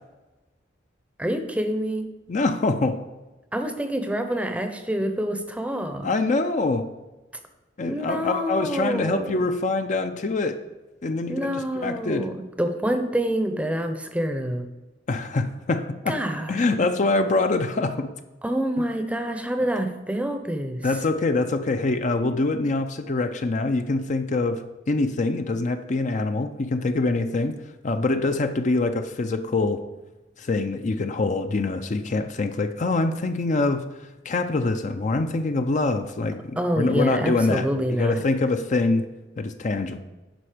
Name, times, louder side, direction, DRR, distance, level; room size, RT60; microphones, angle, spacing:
voice 1, 1.2-2.1 3.5-6.1 7.8-9.5 11.3-14.6 16.1-16.8 18.4-20.9 36.6-38.2, equal, 5° right, 7 dB, 0.7 m, -27 dB
voice 2, 2.3-3.0 6.0-6.9 7.8-10.6 11.0-11.5 11.8-12.3 15.1-16.2 16.5-18.1 20.8-27.5 27.8-29.8 30.4-33.8 34.2-37.7 38.0-39.1 39.4-40.0, left 3 dB, 40° left, 8 dB, 0.5 m, -24 dB
10.0 x 5.3 x 5.0 m, 1.1 s
head